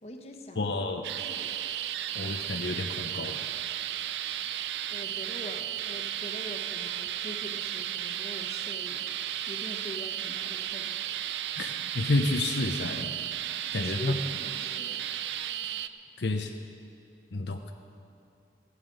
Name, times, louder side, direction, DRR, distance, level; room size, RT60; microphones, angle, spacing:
voice 1, 0.0-0.8 1.2-1.6 4.9-9.1 9.5-11.1 13.5-15.1, equal, 35° left, 3 dB, 1.2 m, -43 dB
voice 2, 0.6-1.1 2.1-3.4 11.6-13.2 13.7-14.2 16.2-16.5 17.3-17.7, left 2 dB, 75° left, 5 dB, 0.7 m, -30 dB
sound 1, 1.0-15.9, right 11 dB, 80° right, 0.4 m, -34 dB
16.0 x 11.0 x 5.3 m, 2.7 s
head